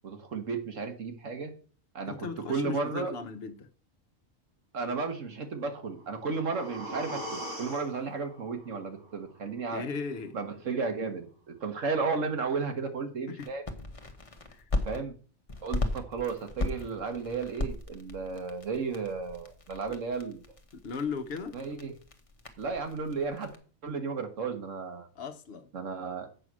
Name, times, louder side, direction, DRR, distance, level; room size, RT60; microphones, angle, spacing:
voice 1, 0.0-1.5 1.9-3.1 4.7-9.8 10.3-13.6 14.8-15.1 15.6-20.4 21.5-21.9 22.6-23.5 23.8-25.1 25.7-26.3, right 4 dB, 65° right, 1.6 m, -33 dB
voice 2, 2.1-3.7 9.7-10.4 13.3-13.5 14.5-14.6 20.7-21.6 25.1-25.7, left 5 dB, 50° left, 1.0 m, -37 dB
sound 1, 5.8-9.8 10.1-10.2, right 1 dB, 80° right, 2.9 m, -42 dB
sound 2, 13.4-15.0 15.5-23.6, left 2 dB, 25° left, 1.0 m, -37 dB
7.8 x 5.7 x 6.1 m
omnidirectional pair, 1.4 m